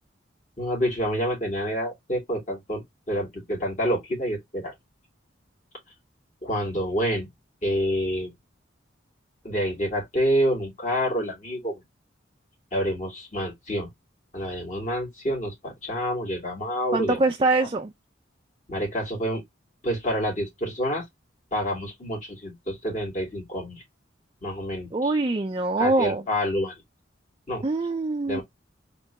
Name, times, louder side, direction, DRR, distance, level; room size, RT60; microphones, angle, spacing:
voice 1, 0.6-4.7 6.4-7.3 7.6-8.3 9.4-11.8 12.7-13.9 14.3-17.2 18.7-19.4 19.8-21.0 21.5-23.8 24.4-24.9 25.8-26.7 27.5-27.6 28.3-28.4, equal, 40° left, 2.8 m, -28 dB
voice 2, 16.9-17.9 24.9-26.2 27.6-28.4, right 2 dB, 25° right, 0.4 m, -24 dB
4.2 x 2.9 x 3.4 m
head